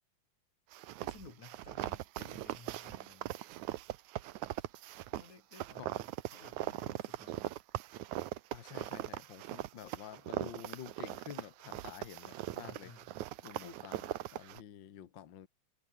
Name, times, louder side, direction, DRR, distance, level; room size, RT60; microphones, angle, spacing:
sound 1, 0.7-14.6, right 15 dB, 80° right, 2.3 m, -40 dB
voice 1, 1.0-3.4 4.6-4.7 5.1-7.6 12.5-13.1 13.6-14.2, left 4 dB, 75° left, 8.0 m, -56 dB
voice 2, 8.5-12.9 13.4-14.0 14.3-15.5, left 10 dB, 55° left, 1.5 m, -50 dB
omnidirectional pair, 3.4 m